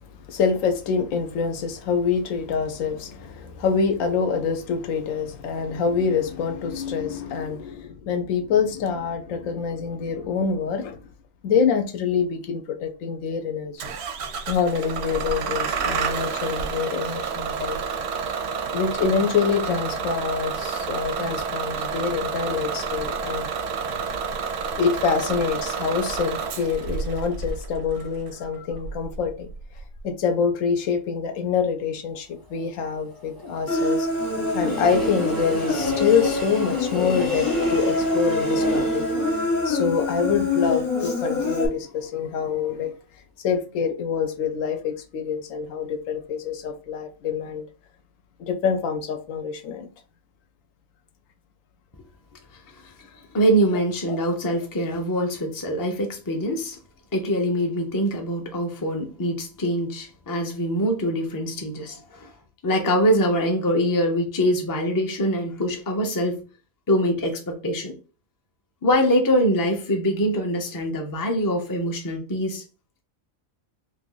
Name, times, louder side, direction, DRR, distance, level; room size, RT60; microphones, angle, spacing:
voice 1, 0.3-11.0 11.4-13.9 14.5-17.8 18.7-23.5 24.8-29.5 30.0-39.4 39.6-42.9 43.4-47.7 48.4-49.9, left 6 dB, 75° left, 1.0 m, -26 dB
Bus / Engine starting, 13.8-30.0, right 5 dB, 65° right, 0.7 m, -30 dB
Train, 32.3-41.4 41.8-41.9, equal, 20° right, 0.7 m, -34 dB
Human voice, 33.7-41.7, left 2 dB, 45° left, 0.9 m, -25 dB
voice 2, 53.3-56.8 57.1-62.3 62.6-66.4 66.9-68.0 68.8-72.6, equal, 25° left, 0.4 m, -24 dB
2.7 x 2.6 x 3.7 m
omnidirectional pair, 1.4 m